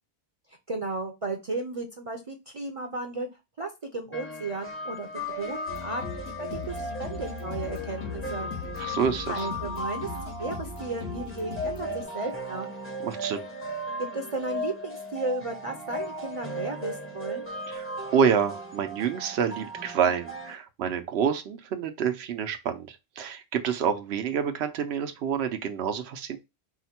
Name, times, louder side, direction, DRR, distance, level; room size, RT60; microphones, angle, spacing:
voice 1, 0.7-3.3 3.6-5.1 5.3-6.0 6.4-8.5 9.3-12.7 14.0-17.5, right 3 dB, 40° right, 0.6 m, -34 dB
sound 1, 4.1-20.5, equal, 15° left, 0.7 m, -36 dB
sound 2, 5.7-12.0, left 5 dB, 70° left, 1.2 m, -38 dB
voice 2, 8.8-9.5 13.0-13.4 17.7-26.4, right 7 dB, 90° right, 0.9 m, -28 dB
4.7 x 2.1 x 4.2 m
omnidirectional pair, 1.0 m